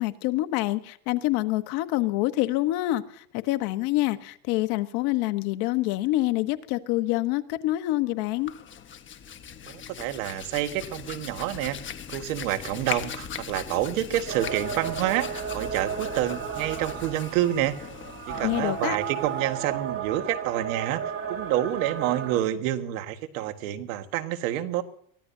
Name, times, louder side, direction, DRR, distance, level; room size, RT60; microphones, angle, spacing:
voice 1, 0.0-8.5 18.4-19.0, left 17 dB, 65° left, 11 dB, 1.2 m, -26 dB
Hands, 8.3-19.7, left 8 dB, 30° left, 1.2 m, -40 dB
voice 2, 9.7-11.8 12.1-17.7 18.3-21.0 21.3-24.8, right 13 dB, 80° right, 8 dB, 1.7 m, -28 dB
sound 1, 14.3-22.4, right 7 dB, 35° right, 2.4 m, -34 dB
23.0 x 15.5 x 2.8 m, 0.65 s
supercardioid pair, 125°, 40 cm